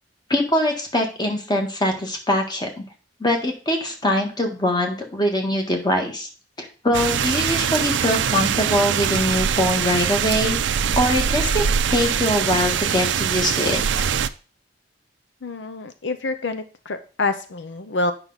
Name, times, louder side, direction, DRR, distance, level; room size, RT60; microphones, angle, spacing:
voice 1, 0.3-2.8 3.2-6.3 6.6-10.6 11.0-11.6 11.9-13.8, left 1 dB, 25° left, 2 dB, 1.6 m, -22 dB
sound 1, 6.9-14.3, right 7 dB, 80° right, 0.5 m, -22 dB
voice 2, 15.4-18.1, left 3 dB, 80° left, 10 dB, 0.7 m, -27 dB
8.8 x 5.8 x 4.0 m, 0.37 s
head